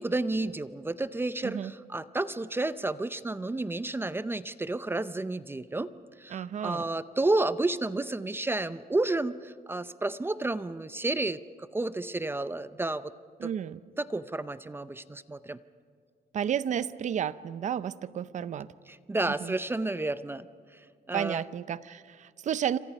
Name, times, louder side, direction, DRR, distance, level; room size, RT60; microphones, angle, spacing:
voice 1, 0.0-5.9 6.2-13.1 13.4-13.5 14.0-15.6 18.9-20.5 20.7-21.4, right 2 dB, 15° right, 14 dB, 0.5 m, -31 dB
voice 2, 6.3-6.9 13.4-13.8 16.3-18.7 19.4-19.5 21.1-22.8, right 9 dB, 50° right, 16 dB, 0.7 m, -32 dB
28.0 x 26.0 x 5.5 m, 2.1 s
cardioid pair, 140°, 16 cm